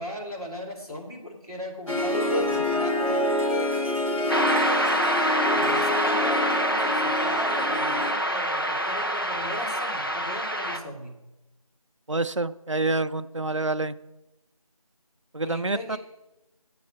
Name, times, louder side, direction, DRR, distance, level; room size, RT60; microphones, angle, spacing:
voice 1, 0.0-3.4 5.5-11.1 15.4-16.0, left 1 dB, 85° left, -1 dB, 2.7 m, -37 dB
Harp, 1.9-8.1, left 1 dB, 60° left, 2.7 m, -27 dB
sound 1, 4.3-10.8, equal, 40° left, 0.7 m, -26 dB
voice 2, 12.1-14.0 15.3-16.0, right 2 dB, 55° right, 11 dB, 0.4 m, -27 dB
11.0 x 7.6 x 4.3 m, 0.99 s
figure-of-eight pair, 175°, 19 cm